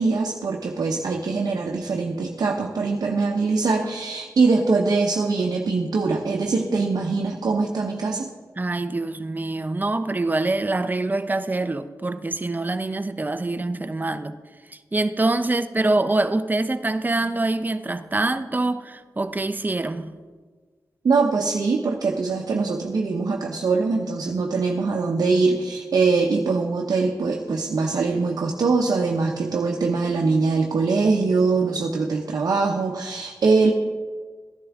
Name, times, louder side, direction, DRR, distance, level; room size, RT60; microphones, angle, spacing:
voice 1, 0.0-8.3 21.0-33.7, right 4 dB, 70° right, 0.9 m, -22 dB
voice 2, 8.6-14.4 14.7-20.2, right 2 dB, 25° right, 0.7 m, -25 dB
13.5 x 11.0 x 3.6 m
cardioid pair, 55°, 7 cm